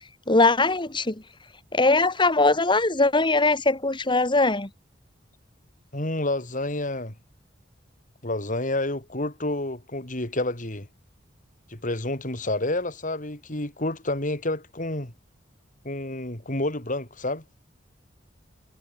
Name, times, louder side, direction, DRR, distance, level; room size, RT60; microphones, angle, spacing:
voice 1, 0.3-1.2 1.7-4.7, left 3 dB, 25° left, 2.3 m, -21 dB
voice 2, 5.9-7.1 8.2-10.9 11.7-15.1 15.8-17.4, left 2 dB, 45° left, 4.3 m, -29 dB
head